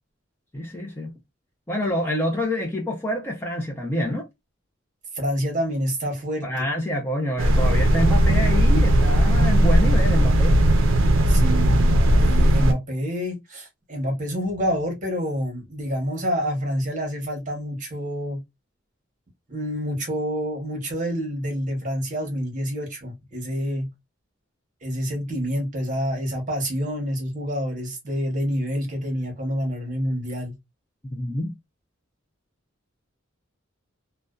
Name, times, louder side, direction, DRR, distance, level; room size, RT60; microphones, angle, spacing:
voice 1, 0.5-1.1 1.7-4.3 6.4-10.6 31.1-31.5, left 1 dB, 10° left, 0.5 m, -27 dB
voice 2, 5.1-6.5 11.3-18.4 19.5-23.9 24.8-30.5, equal, 40° right, 1.0 m, -27 dB
sound 1, 7.4-12.7, right 1 dB, 70° right, 0.4 m, -17 dB
2.6 x 2.1 x 2.2 m
head